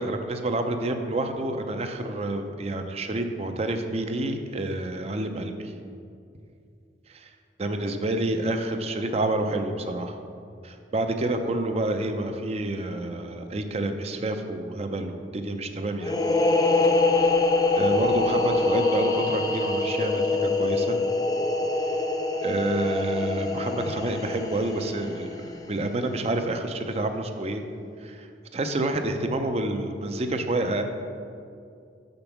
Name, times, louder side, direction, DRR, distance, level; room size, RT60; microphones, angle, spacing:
voice 1, 0.0-5.7 7.1-7.3 7.6-10.2 10.6-16.2 17.1-17.4 17.7-21.0 22.4-27.6 28.0-30.8, right 2 dB, 35° right, 6 dB, 0.5 m, -28 dB
sound 1, 16.0-25.5, left 3 dB, 20° left, 0.5 m, -24 dB
7.0 x 5.2 x 5.8 m, 2.4 s
head